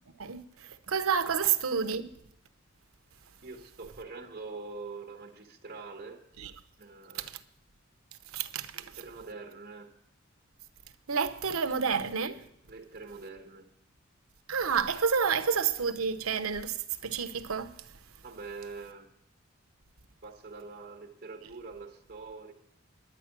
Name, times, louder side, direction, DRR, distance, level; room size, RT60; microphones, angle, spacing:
voice 1, 0.2-2.1 6.4-6.5 7.2-7.3 8.3-8.8 11.1-12.4 14.5-16.8 17.0-17.8, right 6 dB, 90° right, 0.9 m, -29 dB
voice 2, 3.4-6.2 6.8-7.3 8.7-9.9 12.7-13.6 18.2-19.1 20.2-22.5, right 4 dB, 45° right, 1.4 m, -44 dB
11.0 x 9.3 x 6.0 m
head